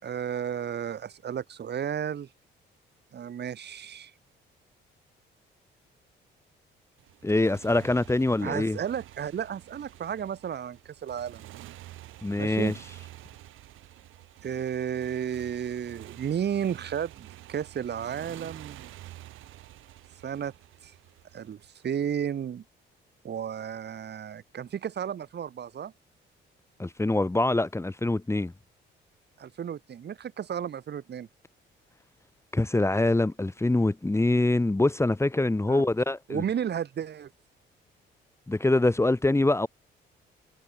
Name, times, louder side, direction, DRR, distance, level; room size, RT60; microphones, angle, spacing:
voice 1, 0.0-2.3 3.1-4.1 8.4-11.5 12.4-12.7 14.4-18.9 20.2-20.5 20.8-20.9 21.3-22.6 23.2-25.9 29.4-31.3 35.7-35.8 36.3-37.3, right 8 dB, 55° right, 5.4 m, -33 dB
Motorcycle, 7.0-22.1, right 15 dB, 85° right, 5.5 m, -48 dB
voice 2, 7.2-8.8 12.2-12.7 26.8-28.5 32.5-36.4 38.5-39.7, left 2 dB, 15° left, 2.5 m, -24 dB
cardioid pair, 90°, 20 cm